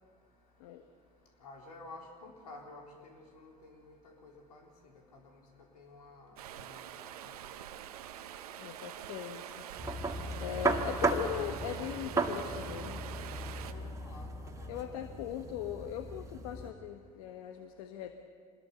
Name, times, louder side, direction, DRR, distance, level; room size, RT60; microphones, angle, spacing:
voice 1, 1.4-4.0 4.2-5.4 5.7-7.3 13.6-15.2, left 2 dB, 80° left, 1 dB, 4.1 m, -52 dB
Stream, 6.4-13.7, right 10 dB, 75° right, 1.2 m, -45 dB
voice 2, 8.6-9.7 10.4-13.0 14.7-18.1, left 10 dB, 65° left, 7 dB, 1.3 m, -40 dB
sound 1, 9.8-16.7, right 3 dB, 15° right, 2.1 m, -35 dB
25.5 x 20.5 x 6.8 m, 2.1 s
hypercardioid pair, 80°, 19 cm